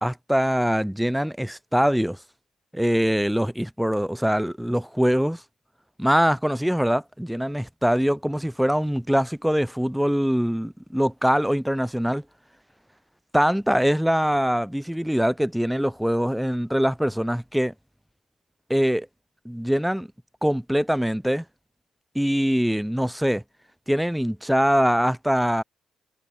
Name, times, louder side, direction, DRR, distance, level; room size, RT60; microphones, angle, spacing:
voice 1, 0.0-2.2 2.7-5.4 6.0-12.2 13.3-17.7 18.7-19.1 19.4-20.1 20.4-21.4 22.1-23.4 23.9-25.6, equal, ahead, 0.7 m, -23 dB
cardioid pair, 90°, 0 cm